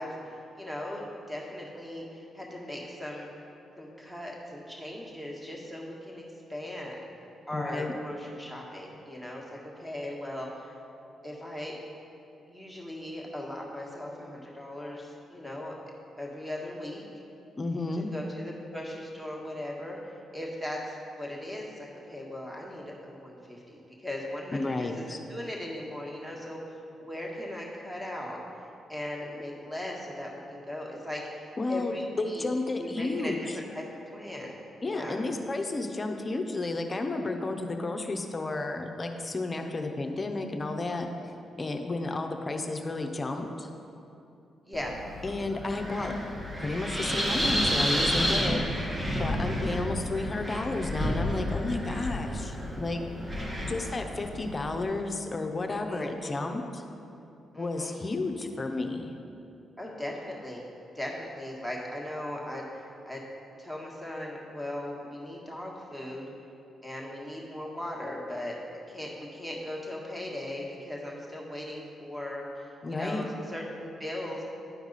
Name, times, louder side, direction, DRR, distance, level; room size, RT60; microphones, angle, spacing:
voice 1, 0.0-3.3 3.8-7.0 7.5-10.7 11.2-11.7 12.5-15.7 16.2-17.0 17.9-28.4 28.9-32.4 32.7-33.8 34.1-34.6 34.8-35.2 44.6-45.0 55.8-56.4 57.5-58.0 59.8-60.6 60.9-63.2 63.6-66.3 66.8-68.5 68.9-74.4, left 1 dB, 10° right, -2 dB, 1.6 m, -38 dB
voice 2, 7.5-7.9 17.6-18.1 24.5-25.2 31.6-33.6 34.8-41.1 41.6-43.7 45.2-46.1 46.6-48.7 49.2-53.0 53.7-56.8 57.6-59.2 72.8-73.3, left 2 dB, 30° left, 4 dB, 0.7 m, -32 dB
Wind, 44.7-54.8, equal, 25° right, 1.3 m, -31 dB
10.5 x 4.6 x 4.1 m, 2.7 s
cardioid pair, 65°, 0 cm